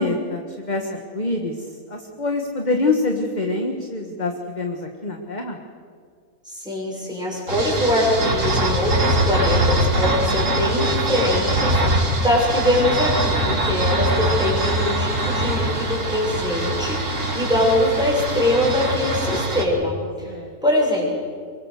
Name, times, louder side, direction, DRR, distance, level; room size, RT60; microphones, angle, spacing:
voice 1, 0.0-1.5 1.9-5.6 13.5-13.8 20.2-20.5, left 3 dB, 30° left, 3 dB, 1.6 m, -25 dB
voice 2, 6.4-20.3 20.6-21.1, left 1 dB, 5° right, -3 dB, 6.5 m, -23 dB
sound 1, 7.5-19.7, right 1 dB, 55° right, 2.8 m, -22 dB
24.5 x 23.5 x 6.6 m, 2.1 s
omnidirectional pair, 1.6 m